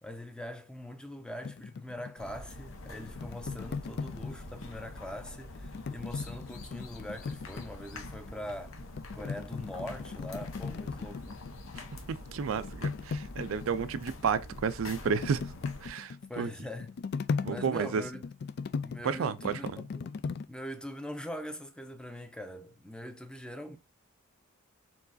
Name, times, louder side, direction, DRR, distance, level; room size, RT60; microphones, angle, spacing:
voice 1, 0.0-8.7 9.1-11.4 16.3-16.9 17.4-18.2 18.8-20.2 20.5-23.8, left 1 dB, 5° left, 0.6 m, -42 dB
sound 1, 1.4-4.9 5.5-8.3 8.7-11.9 12.2-20.4, left 5 dB, 55° left, 0.3 m, -38 dB
sound 2, 2.2-15.9, left 2 dB, 75° left, 0.9 m, -46 dB
voice 2, 12.1-15.5 15.8-16.5 17.4-18.0 19.0-19.6, right 6 dB, 75° right, 0.4 m, -31 dB
4.5 x 4.0 x 2.6 m
head